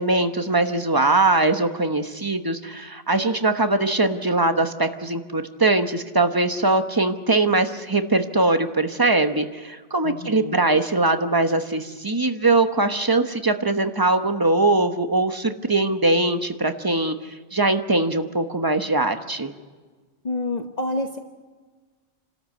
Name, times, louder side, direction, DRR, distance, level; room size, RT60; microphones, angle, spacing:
voice 1, 0.0-19.5, right 2 dB, 20° right, 7 dB, 1.0 m, -21 dB
voice 2, 10.0-10.6 20.2-21.2, left 2 dB, 35° left, 3 dB, 1.1 m, -28 dB
29.0 x 13.0 x 8.3 m, 1.4 s
omnidirectional pair, 1.2 m